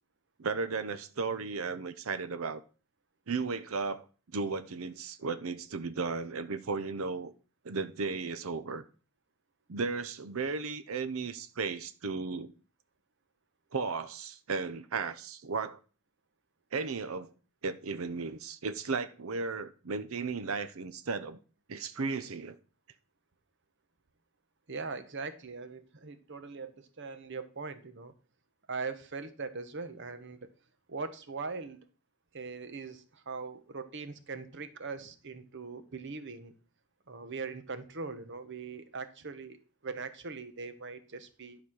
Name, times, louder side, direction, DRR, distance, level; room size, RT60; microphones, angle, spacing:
voice 1, 0.4-2.6 3.3-4.0 4.3-7.3 7.6-8.8 9.7-12.5 13.7-15.8 16.7-17.3 17.6-21.4 21.7-22.6, right 4 dB, 75° right, 0.7 m, -35 dB
voice 2, 24.7-28.1 28.7-30.5 30.9-31.8 32.3-36.5 37.1-39.6 39.8-41.6, right 4 dB, 60° right, 1.1 m, -41 dB
11.5 x 4.1 x 6.2 m
head